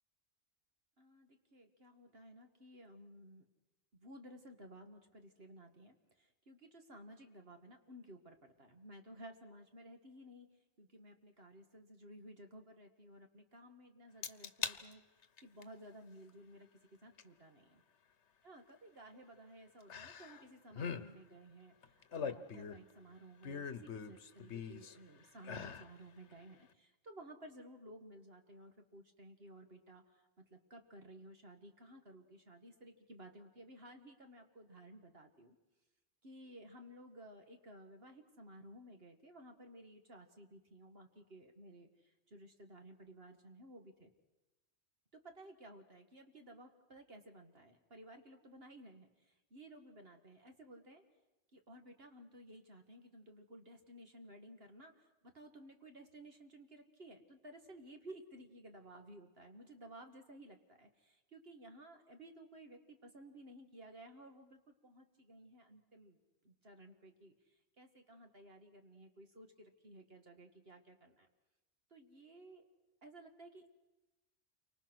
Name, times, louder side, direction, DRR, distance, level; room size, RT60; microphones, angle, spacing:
voice 1, 1.0-3.5 3.9-10.5 10.8-15.0 15.4-16.7 17.0-17.8 18.4-35.6 36.2-44.1 45.1-51.0 51.5-66.2 66.4-71.3 71.9-72.6 73.0-73.7, right 1 dB, 55° right, 5 dB, 2.1 m, -56 dB
sound 1, 14.2-14.8 15.2-15.6 17.2-17.3 19.9-20.4 20.7-21.1 21.8-22.9 23.4-25.0 25.4-25.9 26.3-26.4, left 6 dB, 70° left, 1.3 m, -42 dB
29.5 x 24.5 x 6.2 m, 1.0 s
omnidirectional pair, 1.2 m